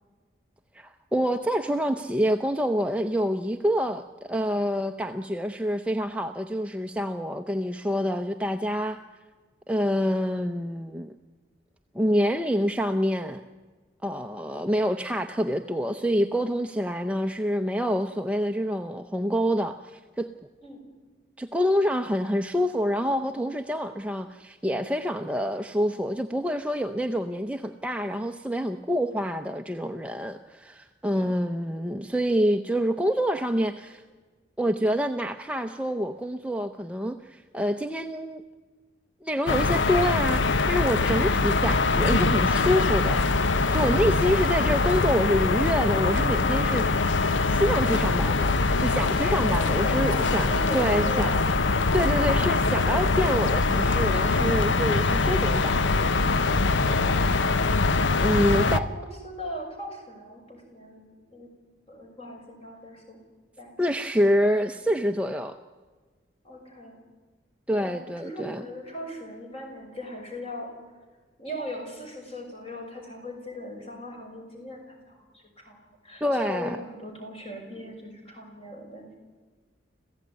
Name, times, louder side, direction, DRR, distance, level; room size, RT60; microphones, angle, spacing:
voice 1, 0.7-9.0 9.7-11.1 11.9-13.4 14.0-20.3 21.4-34.0 34.6-38.4 39.2-43.2 43.7-48.5 48.8-51.3 51.9-56.2 58.2-58.8 63.8-65.6 67.7-68.7 76.2-76.8, equal, 5° right, 6 dB, 0.7 m, -27 dB
sound 1, 39.5-58.8, left 3 dB, 80° left, 0.9 m, -23 dB
voice 2, 49.4-51.7 57.0-57.6 58.2-61.5 61.9-63.2 63.6-63.8 66.4-67.0 67.8-70.7 71.4-79.2, equal, 30° left, 2 dB, 6.2 m, -39 dB
26.5 x 16.0 x 9.6 m, 1.4 s
head